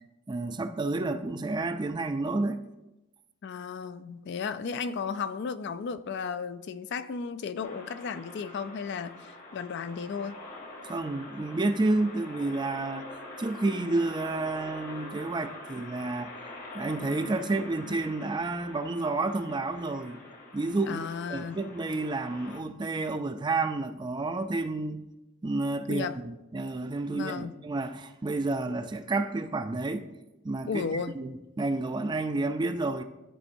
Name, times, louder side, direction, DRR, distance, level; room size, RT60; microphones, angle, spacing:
voice 1, 0.3-2.6 10.8-13.1 13.4-16.3 16.7-20.2 20.5-25.1 25.4-30.1 30.4-33.0, right 2 dB, 20° right, 0.4 m, -30 dB
voice 2, 3.4-10.4 20.9-21.6 25.9-26.2 27.1-27.6 30.7-31.2, left 5 dB, 55° left, 0.4 m, -34 dB
sound 1, 7.6-22.6, left 2 dB, 40° left, 1.0 m, -45 dB
12.5 x 4.3 x 2.6 m
head